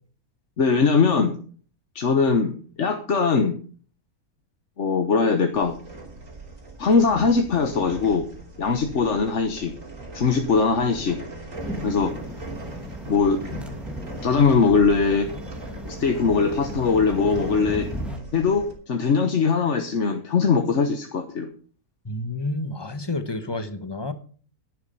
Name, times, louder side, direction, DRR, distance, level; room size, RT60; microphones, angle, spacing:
voice 1, 0.6-1.3 1.9-3.6 4.8-5.7 6.8-8.2 8.6-9.7 10.1-11.2 11.8-12.1 13.1-13.6 14.2-15.3 15.8-17.9 18.3-21.5, left 5 dB, 55° left, 5 dB, 1.5 m, -21 dB
sound 1, 5.5-18.7, right 2 dB, 60° right, 3.5 m, -40 dB
sound 2, 11.5-18.2, equal, ahead, 1.5 m, -36 dB
voice 2, 22.0-24.1, left 2 dB, 20° left, 10 dB, 1.0 m, -30 dB
11.0 x 11.0 x 5.5 m, 0.42 s
omnidirectional pair, 1.5 m